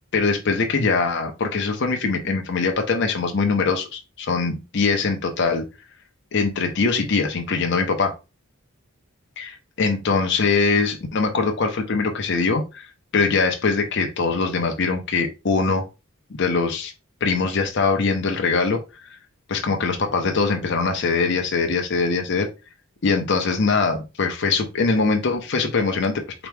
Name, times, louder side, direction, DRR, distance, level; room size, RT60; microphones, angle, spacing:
voice 1, 0.1-5.6 6.3-8.1 9.4-9.5 9.8-12.9 13.1-15.9 16.3-16.9 17.2-18.8 19.5-22.5 23.0-26.2, left 4 dB, 55° left, 0.7 m, -22 dB
4.4 x 3.0 x 3.4 m
head